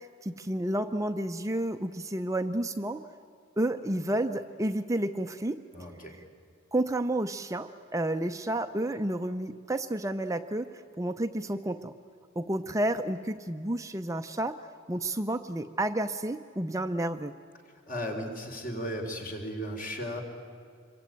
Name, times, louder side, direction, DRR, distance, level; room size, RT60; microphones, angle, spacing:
voice 1, 0.0-3.1 3.6-5.6 6.7-11.9 12.4-14.6 14.9-17.3, right 1 dB, 15° right, 7 dB, 0.6 m, -31 dB
voice 2, 5.7-6.2 17.9-20.2, equal, 45° left, 2 dB, 4.2 m, -35 dB
26.5 x 23.0 x 9.2 m, 2.2 s
head